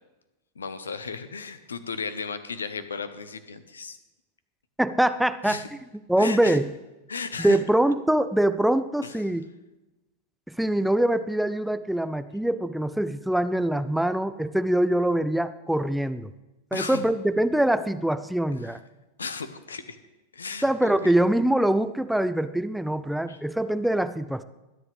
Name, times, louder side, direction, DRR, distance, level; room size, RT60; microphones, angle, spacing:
voice 1, 0.5-4.0 5.4-5.7 6.2-6.6 7.1-7.6 9.0-9.1 16.7-17.0 18.6-18.8 19.2-20.0 20.3-21.1 23.3-23.4, left 5 dB, 70° left, 12 dB, 1.0 m, -35 dB
voice 2, 4.8-5.6 6.1-6.7 7.4-9.4 10.5-16.3 16.7-18.8 20.6-24.4, right 1 dB, ahead, 12 dB, 0.5 m, -24 dB
21.5 x 9.9 x 3.4 m, 1.0 s
figure-of-eight pair, 90°, 0 cm